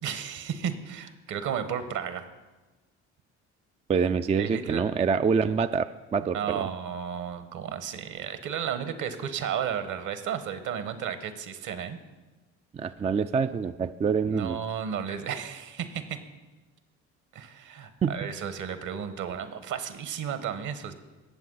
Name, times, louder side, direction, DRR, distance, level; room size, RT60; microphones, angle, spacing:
voice 1, 0.0-2.2 4.4-4.8 6.2-12.0 14.3-16.2 17.3-20.9, right 8 dB, 60° right, 10 dB, 1.3 m, -33 dB
voice 2, 3.9-6.7 12.7-14.6 18.0-18.3, right 6 dB, 20° right, 11 dB, 0.3 m, -26 dB
18.0 x 7.4 x 4.0 m, 1.2 s
hypercardioid pair, 60°, 35 cm